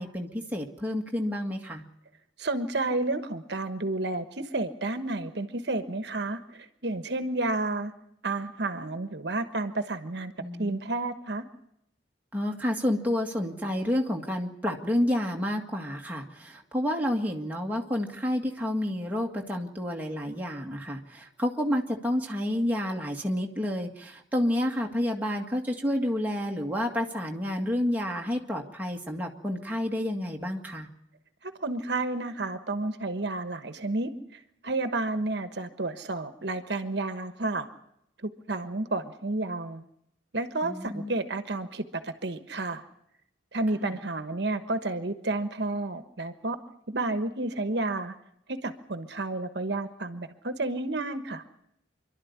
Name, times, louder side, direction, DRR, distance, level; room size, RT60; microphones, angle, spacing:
voice 1, 0.0-1.8 10.4-10.8 12.3-30.9 40.6-41.1 43.8-44.0, left 1 dB, 10° right, 0 dB, 1.8 m, -29 dB
voice 2, 2.4-7.9 8.2-10.3 10.6-11.4 31.4-37.7 38.2-39.9 40.3-42.8 43.5-46.6 46.9-48.1 48.5-51.4, right 2 dB, 60° right, 9 dB, 1.2 m, -31 dB
26.5 x 12.0 x 9.5 m, 0.79 s
head